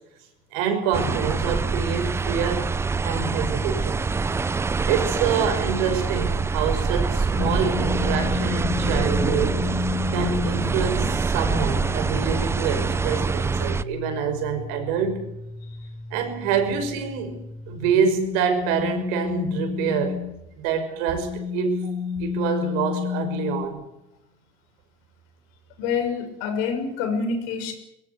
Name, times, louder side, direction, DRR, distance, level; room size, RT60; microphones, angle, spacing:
voice 1, 0.5-4.0 4.9-9.6 10.1-15.3 16.1-20.3 20.6-21.8 22.2-23.8, right 6 dB, 85° right, 7 dB, 5.8 m, -26 dB
sound 1, 0.9-13.8, right 4 dB, 15° right, 0.7 m, -25 dB
sound 2, 7.4-20.4 21.0-23.7, left 7 dB, 35° left, 2.6 m, -32 dB
voice 2, 25.8-27.7, left 5 dB, 85° left, 6 dB, 6.5 m, -26 dB
22.5 x 19.5 x 8.3 m, 0.86 s
cardioid pair, 130°, 17 cm